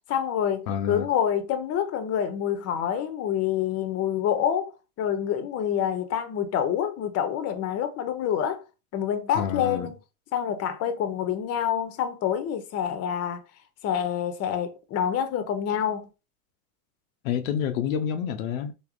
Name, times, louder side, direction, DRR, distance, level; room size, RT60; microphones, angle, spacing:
voice 1, 0.1-4.7 5.0-8.6 8.9-10.0 10.3-13.4 13.8-16.1, left 9 dB, 35° left, 0.7 m, -27 dB
voice 2, 0.7-1.1 9.3-9.9 17.2-18.7, left 8 dB, 70° left, 0.6 m, -28 dB
3.5 x 2.1 x 3.7 m
hypercardioid pair, 105°, 43 cm